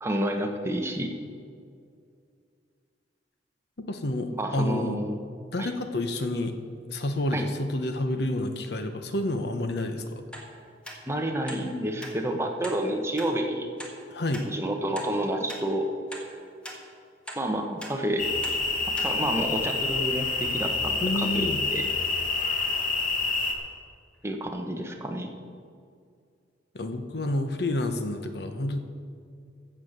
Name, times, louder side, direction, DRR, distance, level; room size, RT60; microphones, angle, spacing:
voice 1, 0.0-1.2 4.4-5.1 5.6-5.7 7.3-7.4 11.1-13.7 14.5-15.9 17.3-18.3 19.0-21.8 22.1-22.2 24.2-25.3, right 1 dB, 15° right, 3 dB, 1.1 m, -29 dB
voice 2, 3.9-5.0 5.5-6.6 6.9-10.2 14.1-14.5 21.0-21.6 26.7-28.8, left 1 dB, 65° left, 7 dB, 1.0 m, -29 dB
sound 1, 10.3-10.5 10.8-11.0 11.5-11.6 12.0-12.1 12.6-12.8 13.2-13.3 13.8-13.9 14.3-14.5 15.0-15.1 15.5-15.6 16.1-16.3 16.6-16.8 17.3-17.4 17.8-17.9 18.4-18.6 19.0-19.1 19.6-19.7, equal, 5° left, 1.7 m, -40 dB
sound 2, 18.2-23.5, left 4 dB, 50° left, 1.5 m, -27 dB
15.0 x 7.4 x 6.6 m, 2.3 s
head